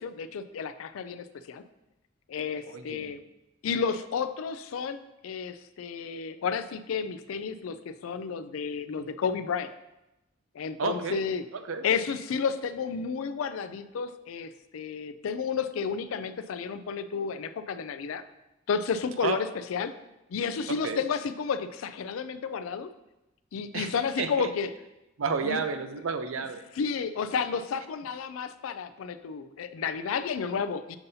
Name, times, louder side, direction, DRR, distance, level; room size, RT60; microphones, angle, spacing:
voice 1, 0.0-1.6 2.3-3.2 3.6-9.7 10.5-11.4 11.8-18.2 18.7-19.9 20.3-22.9 23.5-24.7 25.4-25.6 26.8-31.0, left 6 dB, 85° left, 11 dB, 0.4 m, -31 dB
voice 2, 2.7-3.2 10.8-11.2 11.5-11.9 19.2-19.4 20.7-21.0 23.7-24.5 25.2-26.7, right 5 dB, 80° right, 9 dB, 0.5 m, -31 dB
6.9 x 5.4 x 2.7 m, 0.95 s
head